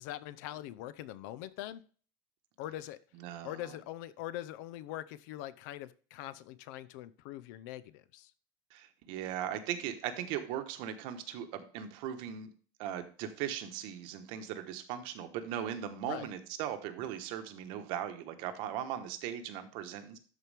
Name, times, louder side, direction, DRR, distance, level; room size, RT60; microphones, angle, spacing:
voice 1, 0.0-1.8 2.6-3.0 3.4-8.3 16.0-16.3, left 13 dB, 60° left, 16 dB, 0.6 m, -42 dB
voice 2, 3.1-3.8 8.7-12.5 12.8-20.2, right 10 dB, 50° right, 9 dB, 1.1 m, -38 dB
12.5 x 4.6 x 3.4 m, 0.41 s
cardioid pair, 180°, 11 cm